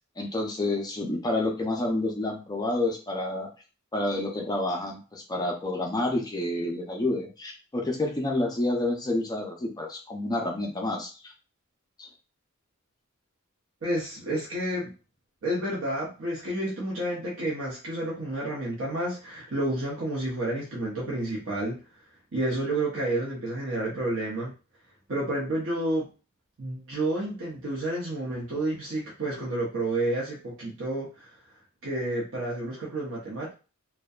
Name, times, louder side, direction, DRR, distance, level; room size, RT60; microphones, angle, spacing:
voice 1, 0.2-3.5 3.9-11.3 12.0-12.1, left 2 dB, 20° left, 2 dB, 0.4 m, -29 dB
voice 2, 13.8-14.9 15.4-21.8 22.3-24.5 25.1-26.1 26.6-31.3 31.8-33.5, right 1 dB, 65° right, -5 dB, 0.7 m, -30 dB
2.6 x 2.2 x 2.3 m, 0.33 s
head